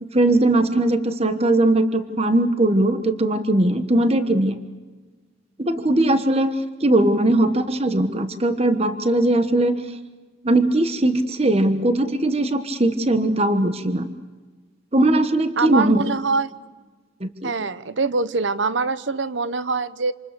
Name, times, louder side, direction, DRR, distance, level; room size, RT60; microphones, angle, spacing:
voice 1, 0.0-4.5 5.6-6.5 6.8-9.8 10.4-14.1 14.9-16.0 17.2-17.5, right 1 dB, 30° right, 9 dB, 1.4 m, -19 dB
voice 2, 15.6-16.5 17.4-20.1, right 4 dB, 65° right, 15 dB, 1.0 m, -24 dB
27.5 x 27.5 x 6.8 m, 1.3 s
head